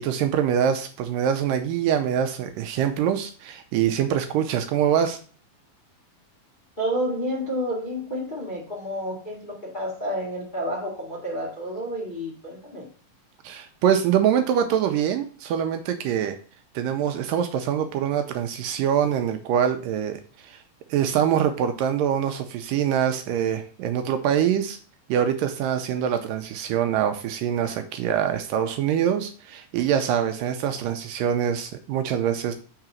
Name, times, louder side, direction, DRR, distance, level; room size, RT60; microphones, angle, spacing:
voice 1, 0.0-5.2 13.4-16.4 16.8-20.6 20.9-24.8 25.1-32.5, right 9 dB, 80° right, 7 dB, 2.1 m, -24 dB
voice 2, 6.8-12.9, equal, 55° left, -4 dB, 0.5 m, -30 dB
5.7 x 3.9 x 5.9 m, 0.41 s
omnidirectional pair, 4.2 m